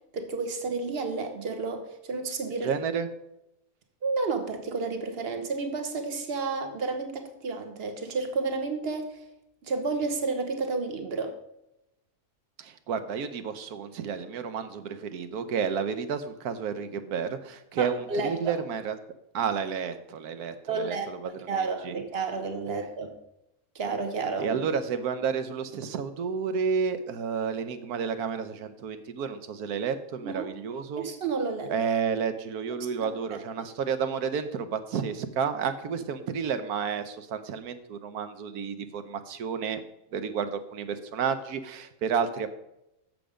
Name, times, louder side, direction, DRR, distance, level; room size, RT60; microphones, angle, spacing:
voice 1, 0.1-2.7 4.0-9.2 9.6-11.4 17.8-18.5 20.7-21.1 21.5-23.2 23.7-24.6 30.2-30.4 31.0-31.7 33.0-33.2, right 4 dB, 40° right, 6 dB, 1.3 m, -31 dB
voice 2, 2.6-3.1 12.6-19.0 19.3-22.0 22.7-22.8 24.4-31.1 31.7-39.8 40.1-42.6, right 6 dB, 75° right, 10 dB, 1.3 m, -31 dB
7.8 x 7.0 x 5.0 m, 0.86 s
omnidirectional pair, 1.6 m